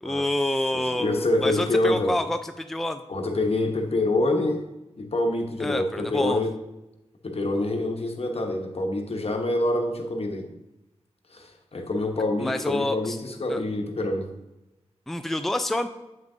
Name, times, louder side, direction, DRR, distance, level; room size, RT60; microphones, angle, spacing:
voice 1, 0.0-3.0 5.6-6.4 12.4-13.2 13.5-13.6 15.1-15.9, left 1 dB, 5° left, 8 dB, 0.4 m, -27 dB
voice 2, 0.7-2.2 3.1-4.6 5.0-6.5 7.2-10.5 11.3-14.3, left 2 dB, 60° left, 3 dB, 1.0 m, -26 dB
7.5 x 6.0 x 2.7 m, 0.96 s
cardioid pair, 45°, 11 cm